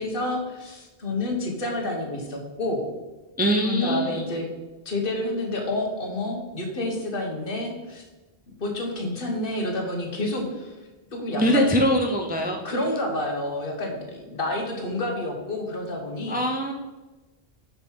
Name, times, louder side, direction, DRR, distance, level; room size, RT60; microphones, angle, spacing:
voice 1, 0.0-2.8 3.6-4.5 4.8-8.0 8.6-10.7 11.1-11.6 12.6-16.4, left 2 dB, 55° left, 1 dB, 1.3 m, -29 dB
voice 2, 3.4-4.2 11.4-12.6 16.3-16.7, equal, 10° right, 2 dB, 0.4 m, -22 dB
5.6 x 5.2 x 4.5 m, 1.2 s
omnidirectional pair, 1.1 m